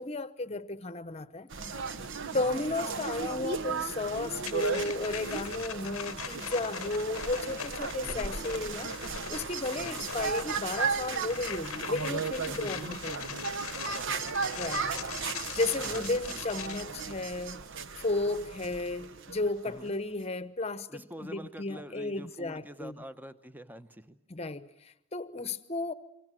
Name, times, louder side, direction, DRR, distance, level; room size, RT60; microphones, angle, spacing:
voice 1, 0.0-1.5 2.3-13.4 14.6-15.0 15.3-17.6 18.0-22.9 24.3-25.9, left 2 dB, 30° left, 0.9 m, -34 dB
sound 1, 1.5-19.9, right 5 dB, 55° right, 1.1 m, -36 dB
sound 2, 4.4-16.8, left 9 dB, 70° left, 0.9 m, -41 dB
voice 2, 8.0-8.4 9.7-10.1 12.5-12.9 13.9-14.5 15.8-16.1 19.6-20.0 20.9-24.2, equal, 10° right, 0.9 m, -47 dB
27.5 x 23.5 x 7.7 m
head